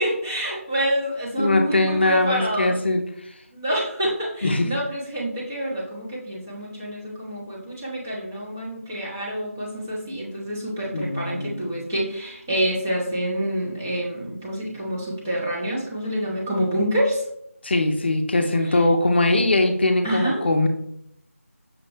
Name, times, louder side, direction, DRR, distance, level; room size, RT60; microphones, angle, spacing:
voice 1, 0.0-2.8 3.5-17.2 18.7-18.8 20.0-20.4, equal, 10° right, -6 dB, 0.5 m, -27 dB
voice 2, 1.4-3.0 4.4-4.7 10.9-11.7 17.6-20.7, left 2 dB, 45° left, 5 dB, 0.5 m, -21 dB
6.1 x 2.1 x 3.1 m, 0.72 s
figure-of-eight pair, 170°, 8 cm